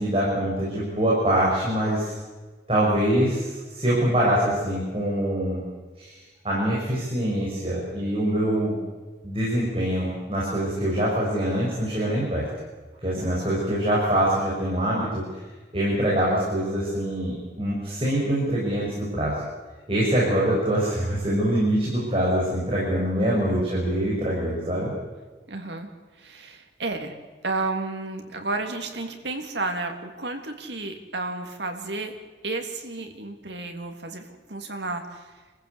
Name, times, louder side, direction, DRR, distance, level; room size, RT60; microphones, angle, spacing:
voice 1, 0.0-2.1 2.7-5.6 6.0-6.2 6.4-8.8 9.2-12.5 13.0-15.4 15.7-19.4 19.9-24.9, right 1 dB, 30° right, -6 dB, 6.9 m, -24 dB
voice 2, 25.5-27.2 27.4-32.1 32.4-35.4, right 3 dB, 80° right, 4 dB, 3.2 m, -32 dB
28.5 x 15.0 x 8.4 m, 1.3 s
head